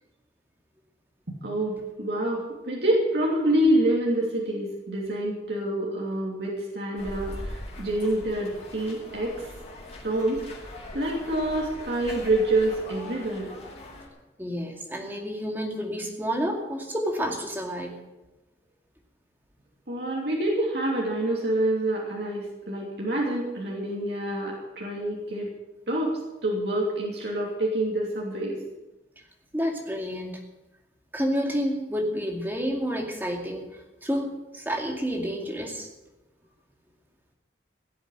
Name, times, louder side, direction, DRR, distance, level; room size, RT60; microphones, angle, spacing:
voice 1, 1.3-9.5 10.0-10.4 10.9-13.5 19.9-25.5 25.9-28.6, right 1 dB, 65° right, -3 dB, 2.9 m, -27 dB
sound 1, 6.9-14.1, left 1 dB, 35° left, 4.7 m, -41 dB
voice 2, 14.4-17.9 29.5-30.4 31.1-33.7 34.0-35.9, equal, 10° right, 1 dB, 2.3 m, -29 dB
17.0 x 7.9 x 9.2 m, 1.0 s
head